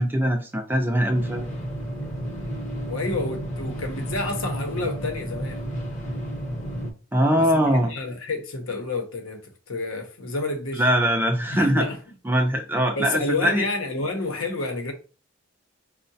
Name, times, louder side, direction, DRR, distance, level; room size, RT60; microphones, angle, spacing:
voice 1, 0.0-1.5 7.1-7.9 10.7-11.9 12.2-13.6, equal, 10° right, 0.4 m, -22 dB
sound 1, 1.1-6.9, right 1 dB, 35° left, 0.7 m, -32 dB
voice 2, 2.8-5.6 7.4-10.8 11.5-12.0 13.0-14.9, left 3 dB, 90° left, 0.8 m, -29 dB
4.6 x 2.1 x 2.6 m
head